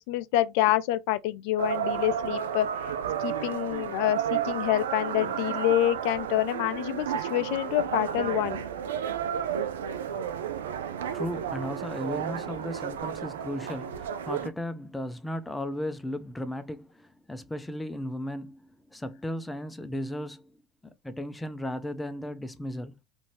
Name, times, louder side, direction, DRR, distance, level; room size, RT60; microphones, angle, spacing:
voice 1, 0.0-2.7 3.2-8.6, left 14 dB, 65° left, 0.4 m, -27 dB
sound 1, 1.6-14.5, right 8 dB, 80° right, 0.3 m, -32 dB
voice 2, 10.8-20.6 20.8-23.0, left 1 dB, 10° left, 0.6 m, -36 dB
2.7 x 2.6 x 3.1 m
hypercardioid pair, 75°, 0 cm